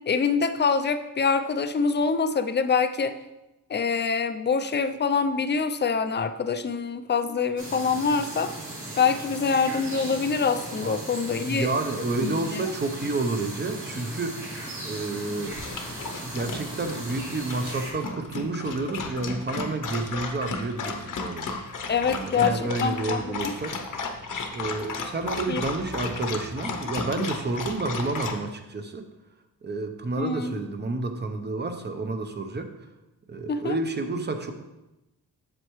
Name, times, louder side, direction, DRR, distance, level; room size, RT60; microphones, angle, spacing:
voice 1, 0.1-3.2 3.7-8.5 9.0-11.7 12.2-12.6 21.9-23.5 25.5-25.6 27.2-27.3 30.2-30.5 33.5-33.8, left 5 dB, 30° left, 9 dB, 0.4 m, -25 dB
sound 1, 7.6-17.9, right 1 dB, 55° right, 2.8 m, -37 dB
voice 2, 11.4-14.4 14.8-15.6 16.2-21.6 22.1-23.8 24.5-29.0 29.6-32.7 33.3-34.5, right 3 dB, 30° right, 6 dB, 0.7 m, -30 dB
Dog, 15.5-28.4, left 4 dB, 60° left, 0.9 m, -34 dB
7.7 x 6.7 x 3.1 m, 0.99 s
wide cardioid pair, 115°, 36 cm